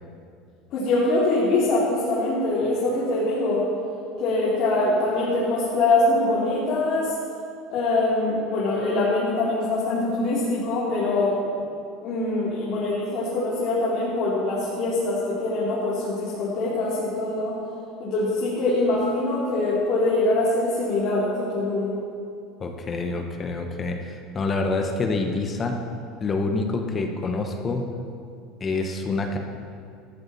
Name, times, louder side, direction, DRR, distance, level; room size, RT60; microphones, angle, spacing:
voice 1, 0.7-3.6 4.2-7.1 7.7-11.4 12.0-17.6 18.0-21.9, left 2 dB, 45° left, -8 dB, 2.7 m, -23 dB
voice 2, 22.6-25.8 26.2-27.9 28.6-29.4, left 3 dB, 20° left, 4 dB, 1.0 m, -27 dB
14.5 x 13.5 x 4.1 m, 2.3 s
cardioid pair, 160°, 0 cm